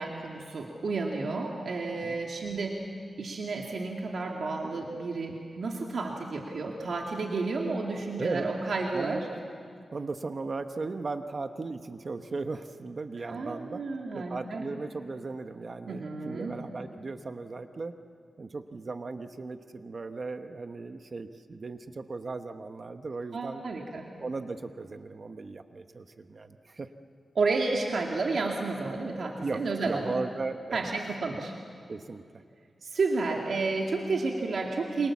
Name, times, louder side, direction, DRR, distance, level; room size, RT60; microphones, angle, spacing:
voice 1, 0.0-2.9 3.2-9.2 13.2-14.7 15.9-16.6 23.3-24.1 27.3-30.1 30.7-31.5 32.8-35.1, right 3 dB, 70° right, 0 dB, 2.4 m, -31 dB
voice 2, 8.9-9.4 9.9-13.8 14.1-17.9 18.4-23.6 24.2-26.9 29.4-30.9 31.9-32.2, right 3 dB, 45° right, 7 dB, 1.0 m, -37 dB
28.5 x 26.5 x 7.3 m, 2.2 s
wide cardioid pair, 110°, 0 cm